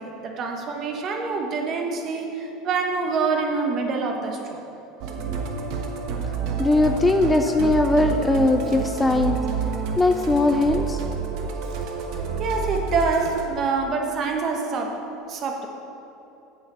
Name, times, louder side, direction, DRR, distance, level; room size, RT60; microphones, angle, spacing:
voice 1, 0.0-4.6 12.4-15.7, right 4 dB, 40° right, 3 dB, 1.1 m, -26 dB
Musical instrument, 5.0-13.5, right 5 dB, 60° right, 1.1 m, -29 dB
voice 2, 6.6-9.4 10.0-11.0, left 2 dB, 10° left, 6 dB, 0.4 m, -20 dB
8.3 x 7.3 x 5.6 m, 3.0 s
supercardioid pair, 125°, 0 cm